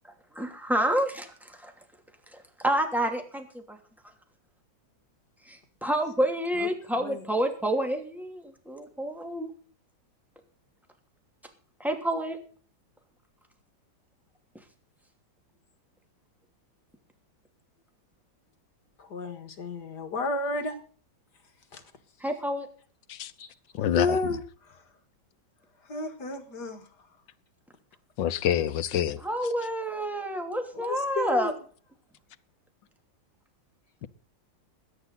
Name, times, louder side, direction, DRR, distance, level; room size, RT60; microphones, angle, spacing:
voice 1, 0.3-1.7 2.3-3.8 5.4-9.5 11.8-12.4 22.2-22.7 29.2-31.5, right 1 dB, ahead, 2.7 m, -29 dB
voice 2, 19.0-20.8 21.7-21.8 23.4-23.5 23.9-24.8 25.8-26.9 30.7-31.5, left 3 dB, 60° left, 2.4 m, -32 dB
voice 3, 23.8-24.2 28.2-29.2, left 10 dB, 80° left, 1.5 m, -26 dB
21.0 x 10.5 x 4.0 m
omnidirectional pair, 2.0 m